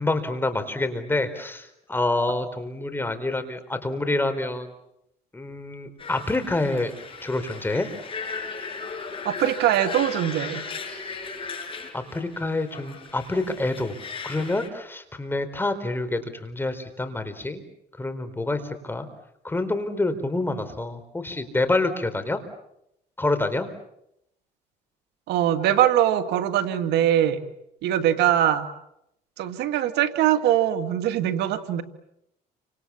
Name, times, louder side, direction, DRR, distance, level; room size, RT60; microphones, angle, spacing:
voice 1, 0.0-4.7 5.3-6.9 7.2-7.9 11.9-13.9 14.2-17.6 18.0-19.1 19.4-22.4 23.2-23.7, left 2 dB, 10° left, 8 dB, 4.3 m, -27 dB
sound 1, 6.0-14.7, left 5 dB, 30° left, 7.6 m, -37 dB
voice 2, 9.2-10.6 25.3-27.4 27.8-28.7 29.4-31.8, right 11 dB, 80° right, 8 dB, 2.2 m, -22 dB
30.0 x 26.5 x 7.3 m, 0.79 s
cardioid pair, 110°, 17 cm